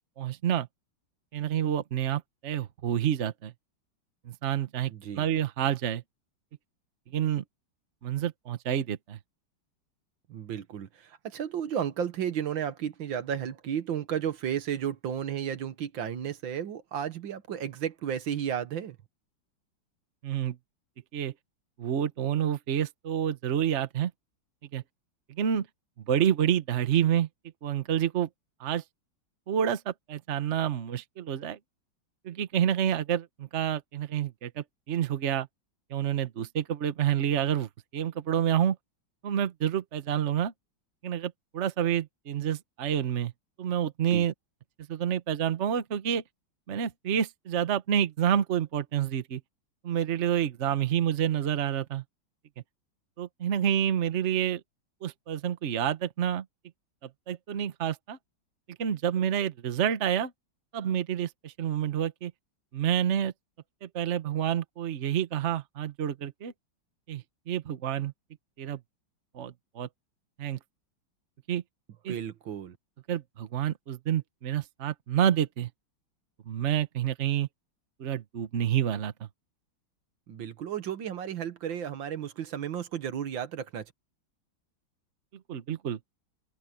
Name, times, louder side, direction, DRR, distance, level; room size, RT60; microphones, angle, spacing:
voice 1, 0.2-0.7 1.3-3.5 4.2-6.0 7.1-7.4 8.0-9.2 20.2-20.6 21.1-21.3 21.8-24.1 24.7-24.8 25.3-25.7 26.1-27.3 27.6-28.3 28.6-28.8 29.5-31.6 32.2-35.5 35.9-38.8 39.2-40.5 41.0-43.3 43.6-44.3 44.9-46.2 46.7-49.4 49.8-52.0 53.2-54.6 55.0-56.4 57.3-58.2 58.8-60.3 60.7-62.3 62.7-63.3 63.8-66.5 67.1-68.1 68.6-68.8 69.3-69.9 70.4-70.6 71.5-71.6 72.0-72.1 73.1-75.7 76.5-77.5 78.0-79.3 85.5-86.0, right 9 dB, 45° right, 1.1 m, -28 dB
voice 2, 4.9-5.3 10.3-19.0 44.1-44.3 72.1-72.8 80.3-83.9, right 9 dB, 75° right, 1.9 m, -33 dB
omnidirectional pair, 2.1 m